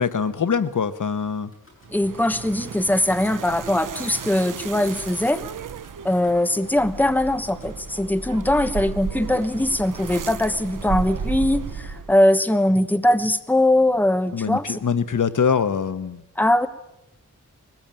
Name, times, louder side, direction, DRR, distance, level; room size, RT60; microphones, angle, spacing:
voice 1, 0.0-1.5 14.3-16.2, left 6 dB, 75° left, 12 dB, 1.2 m, -23 dB
Car / Engine starting / Idling, 1.4-2.2 2.5-3.3 3.9-4.0 4.2-4.3 4.6-4.9 5.8-12.0, left 3 dB, 40° left, 7.7 m, -44 dB
sound 1, 1.8-12.2, right 7 dB, 75° right, 0.8 m, -34 dB
voice 2, 1.9-5.4 6.0-14.8 16.4-16.7, left 1 dB, 5° left, 10 dB, 1.1 m, -21 dB
22.0 x 20.0 x 9.0 m, 0.87 s
wide cardioid pair, 130°, 32 cm